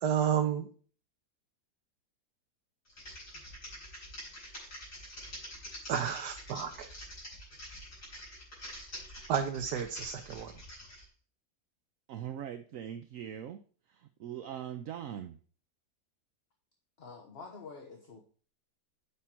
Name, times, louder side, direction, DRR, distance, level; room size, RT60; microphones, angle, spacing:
voice 1, 0.0-0.7 5.9-6.9 9.3-10.5, right 8 dB, 80° right, 5 dB, 1.4 m, -31 dB
Typing, 2.9-11.0, equal, 65° left, 5.5 m, -46 dB
voice 2, 12.1-13.6 13.9-15.4, right 9 dB, 65° right, 8 dB, 1.0 m, -41 dB
voice 3, 17.0-18.2, left 4 dB, 40° left, 3 dB, 1.2 m, -47 dB
8.5 x 5.6 x 4.4 m, 0.41 s
omnidirectional pair, 1.8 m